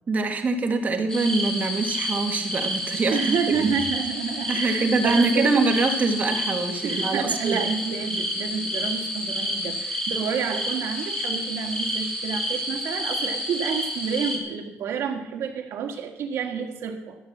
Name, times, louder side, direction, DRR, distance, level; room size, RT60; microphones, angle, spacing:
voice 1, 0.1-3.7 4.5-7.6, right 3 dB, 35° right, 5 dB, 1.7 m, -24 dB
sound 1, 1.1-14.4, equal, 15° left, 2.4 m, -29 dB
voice 2, 3.1-5.4 6.8-17.2, right 7 dB, 75° right, 4 dB, 1.7 m, -29 dB
13.0 x 8.2 x 7.3 m, 0.94 s
cardioid pair, 140°, 5 cm